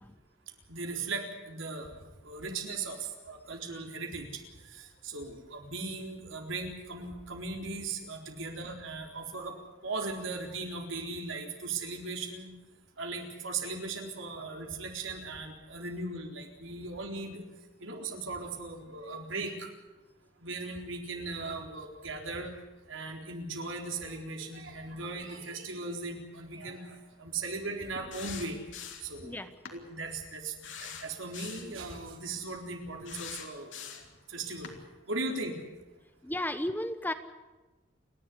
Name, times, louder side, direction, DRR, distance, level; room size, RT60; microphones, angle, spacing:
voice 1, 0.7-1.9 2.2-9.5 9.8-12.5 13.0-17.4 17.8-19.7 20.4-22.5 22.9-28.6 29.0-29.3 29.7-33.9 34.3-34.7 35.1-35.5, right 3 dB, 75° right, 3 dB, 4.0 m, -38 dB
sound 1, 28.1-29.2 29.6-29.8 30.6-31.7 33.0-34.2 34.6-34.8, left 8 dB, 70° left, 3.4 m, -43 dB
voice 2, 36.2-37.1, left 1 dB, 10° left, 10 dB, 1.0 m, -33 dB
30.0 x 11.5 x 9.9 m, 1.1 s
head